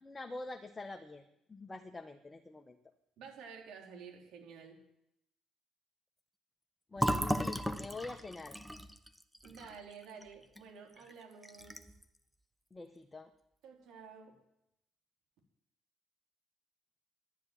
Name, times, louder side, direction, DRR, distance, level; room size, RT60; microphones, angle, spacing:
voice 1, 0.0-1.2 1.5-2.8 6.9-8.6 12.7-13.3, left 3 dB, 25° left, 4 dB, 1.5 m, -45 dB
voice 2, 3.2-4.8 9.4-11.8 13.6-14.3, right 6 dB, 70° right, 1 dB, 3.8 m, -51 dB
Fill (with liquid), 7.0-10.6 11.0-11.1 11.4-12.0, equal, ahead, 1.3 m, -36 dB
11.5 x 10.5 x 9.4 m, 0.82 s
hypercardioid pair, 50°, 0 cm